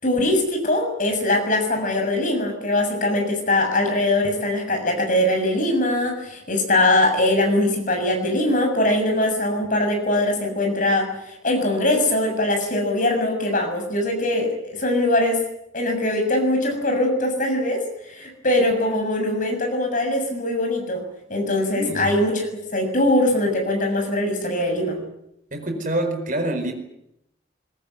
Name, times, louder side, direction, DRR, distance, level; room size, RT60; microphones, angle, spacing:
voice 1, 0.0-11.1 11.4-15.4 15.7-21.0 21.3-22.4 22.7-25.0, left 1 dB, 45° left, 7.0 m, -21 dB
voice 2, 21.7-22.1 25.5-26.7, right 1 dB, 45° right, 4.9 m, -26 dB
22.5 x 20.5 x 9.5 m
head